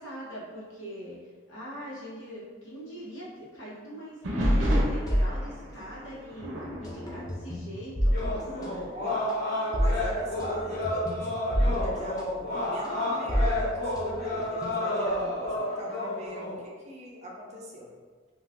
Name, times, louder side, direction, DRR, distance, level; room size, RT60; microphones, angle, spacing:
voice 1, 0.0-6.5 6.8-9.0, equal, 80° left, -7 dB, 1.0 m, -42 dB
sound 1, 4.2-8.4 8.7-9.1 9.7-9.8 10.5-13.2 15.1-15.6, equal, 80° right, 0.6 m, -37 dB
sound 2, 4.4-6.1 6.4-15.1, equal, 20° left, 0.3 m, -29 dB
sound 3, 8.1-16.6, left 1 dB, 50° left, 1.3 m, -31 dB
voice 2, 9.8-17.9, equal, 35° right, -3 dB, 0.5 m, -40 dB
2.4 x 2.4 x 3.4 m, 1.4 s
head